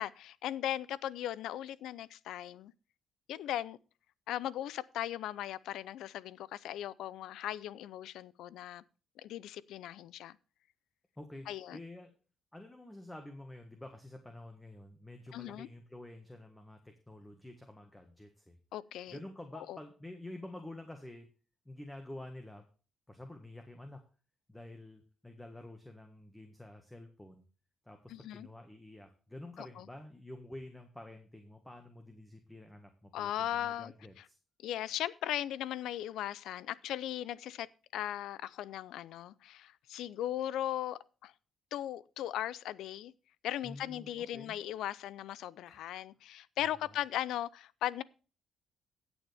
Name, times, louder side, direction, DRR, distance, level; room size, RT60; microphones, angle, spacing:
voice 1, 0.0-2.7 3.3-3.8 4.3-8.8 9.2-10.4 11.5-11.8 15.3-15.7 18.7-19.2 19.5-19.8 28.1-28.5 29.6-29.8 33.1-33.9 34.6-37.7 37.9-41.3 41.7-43.1 43.4-48.0, left 12 dB, 85° left, 0.5 m, -38 dB
voice 2, 11.2-12.1 12.5-18.6 19.1-21.3 21.6-22.6 23.1-24.0 24.5-27.4 27.8-34.4 43.6-44.6 45.7-45.8 46.6-47.0, left 1 dB, 10° left, 1.6 m, -49 dB
16.0 x 7.1 x 3.4 m
cardioid pair, 90°, 0 cm